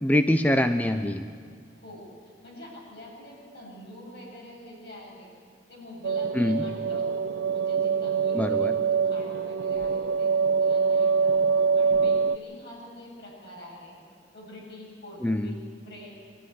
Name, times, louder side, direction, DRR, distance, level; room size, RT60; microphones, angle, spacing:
voice 1, 0.0-1.2 6.3-6.6 8.3-8.7 15.2-15.5, left 1 dB, 10° left, 8 dB, 0.5 m, -24 dB
voice 2, 1.5-5.3 5.7-7.1 7.5-11.4 11.7-14.0 14.3-16.2, left 1 dB, 65° left, -3 dB, 7.9 m, -45 dB
sound 1, 6.0-12.4, right 5 dB, 70° right, 0.5 m, -24 dB
23.5 x 13.0 x 9.9 m, 2.1 s
head